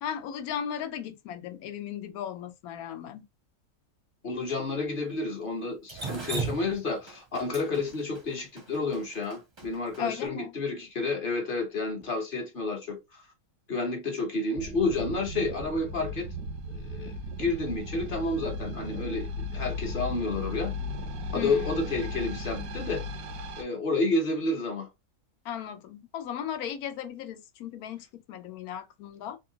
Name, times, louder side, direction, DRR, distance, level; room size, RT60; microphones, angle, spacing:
voice 1, 0.0-3.2 10.0-10.5 21.3-21.9 25.4-29.4, left 9 dB, 85° left, 1.1 m, -36 dB
voice 2, 4.2-13.2 13.7-16.3 16.7-17.1 17.4-20.7 21.3-23.0 23.6-24.9, left 3 dB, 45° left, 0.9 m, -30 dB
Drip, 5.9-10.0, right 4 dB, 30° right, 0.5 m, -36 dB
sound 1, 14.6-23.6, left 1 dB, 90° right, 1.2 m, -36 dB
3.5 x 2.3 x 2.7 m
omnidirectional pair, 1.5 m